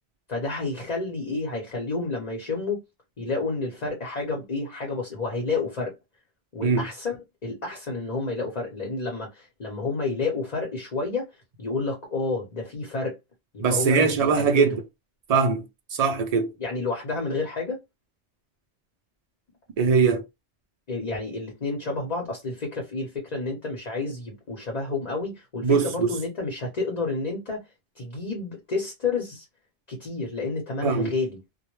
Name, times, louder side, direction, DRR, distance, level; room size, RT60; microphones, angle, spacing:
voice 1, 0.3-2.8 3.2-5.9 6.5-13.2 13.5-14.7 16.6-17.8 20.9-27.6 28.0-29.5 29.9-31.4, left 3 dB, 40° left, 0.8 m, -30 dB
voice 2, 13.6-14.8 15.3-15.6 15.9-16.5 19.8-20.2 25.6-26.2 30.8-31.1, right 5 dB, 75° right, 0.3 m, -21 dB
2.1 x 2.1 x 3.0 m
omnidirectional pair, 1.2 m